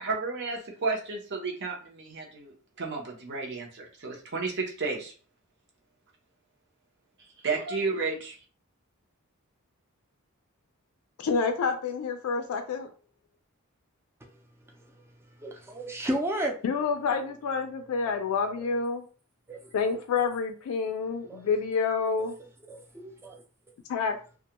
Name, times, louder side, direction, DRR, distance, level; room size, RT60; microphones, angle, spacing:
voice 1, 0.0-5.1 7.4-8.3, right 4 dB, 55° right, 0 dB, 0.7 m, -32 dB
voice 2, 11.2-12.9 16.6-19.0 19.7-22.4 23.9-24.2, left 5 dB, 85° left, 5 dB, 0.3 m, -28 dB
voice 3, 15.4-16.6 18.6-18.7 19.5-19.6 21.3-21.5 22.7-23.4, right 1 dB, 10° right, 1 dB, 0.4 m, -32 dB
2.3 x 2.2 x 2.8 m, 0.38 s
head